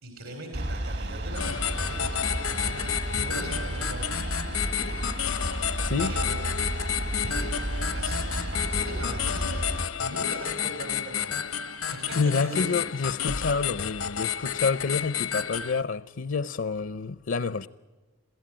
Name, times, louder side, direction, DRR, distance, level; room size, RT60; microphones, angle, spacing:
voice 1, 0.0-4.3 6.0-6.4 7.2-7.6 7.9-9.6 10.0-12.7, right 2 dB, 85° right, 3.8 m, -40 dB
sound 1, 0.5-9.9, right 1 dB, 55° right, 1.1 m, -32 dB
sound 2, 1.4-15.8, left 8 dB, 85° left, 1.0 m, -31 dB
voice 2, 12.1-17.7, left 4 dB, 65° left, 0.6 m, -28 dB
22.0 x 16.0 x 8.7 m
head